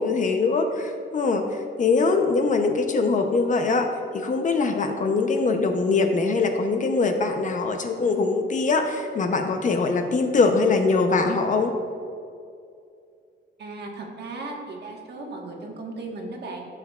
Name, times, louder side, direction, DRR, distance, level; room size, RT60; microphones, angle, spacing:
voice 1, 0.0-11.7, left 3 dB, 40° left, 5 dB, 0.7 m, -22 dB
voice 2, 13.6-16.7, right 2 dB, 60° right, 0 dB, 1.4 m, -36 dB
14.0 x 6.9 x 2.4 m, 2.4 s
wide cardioid pair, 165°, 19 cm